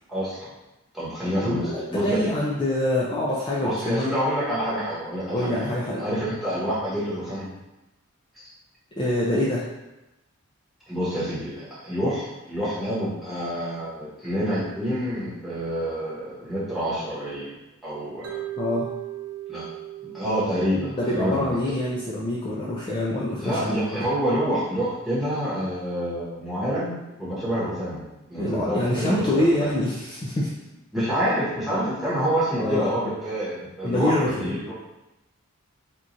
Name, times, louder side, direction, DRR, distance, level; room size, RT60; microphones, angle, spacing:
voice 1, 0.1-0.5 0.9-2.2 3.6-7.5 10.9-17.6 17.8-18.4 19.5-19.6 20.0-21.8 23.4-28.0 28.3-29.5 30.9-34.7, equal, ahead, -10 dB, 1.0 m, -27 dB
voice 2, 1.3-4.1 5.3-6.0 9.0-9.7 18.6-18.9 21.0-24.1 28.3-30.5 32.6-32.9 33.8-34.5, left 1 dB, 20° left, -5 dB, 0.3 m, -25 dB
Mallet percussion, 18.2-22.3, right 14 dB, 75° right, 0.4 m, -38 dB
4.3 x 2.4 x 2.6 m, 0.98 s
head